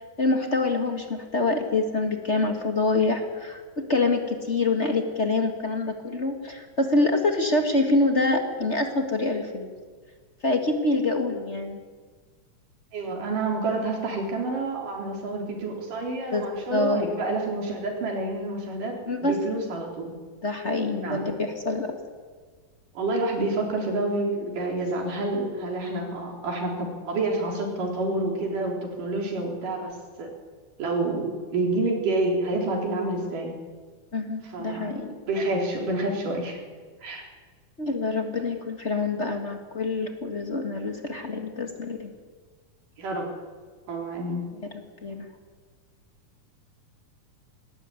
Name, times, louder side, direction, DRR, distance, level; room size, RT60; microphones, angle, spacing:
voice 1, 0.2-9.7 10.4-11.8 16.3-16.4 16.7-17.0 19.0-19.4 20.4-21.9 34.1-35.2 37.8-42.1 45.0-45.3, left 2 dB, 30° left, 4 dB, 1.6 m, -26 dB
voice 2, 12.9-20.1 21.0-21.2 23.0-30.3 30.8-33.5 34.5-34.9 35.3-36.6 37.0-37.3 43.0-43.3 43.9-44.4, right 2 dB, 85° right, 0 dB, 5.4 m, -28 dB
20.0 x 18.0 x 9.8 m, 1.5 s
omnidirectional pair, 3.6 m